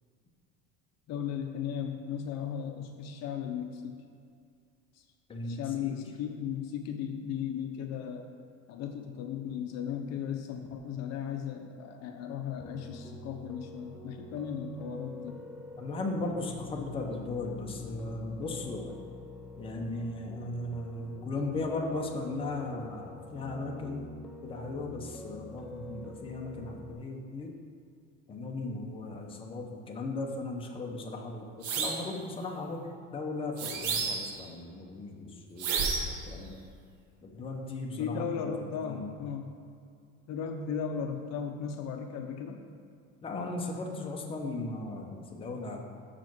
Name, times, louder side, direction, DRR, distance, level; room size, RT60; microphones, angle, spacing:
voice 1, 1.1-4.0 4.9-5.0 5.4-8.3 8.7-15.4 38.0-39.5 40.3-42.6, left 7 dB, 55° left, 4 dB, 0.6 m, -36 dB
voice 2, 5.3-6.0 15.8-19.0 19.6-24.1 24.4-27.5 28.3-36.6 37.2-38.5 38.8-39.1 43.2-45.8, left 2 dB, 15° left, 0 dB, 0.7 m, -37 dB
Piano, 12.6-26.9, left 2 dB, ahead, 0.3 m, -46 dB
sound 1, 31.6-32.1 33.6-34.4 35.6-36.2, right 5 dB, 80° right, 1.1 m, -31 dB
5.8 x 5.0 x 6.0 m, 2.3 s
cardioid pair, 145°, 33 cm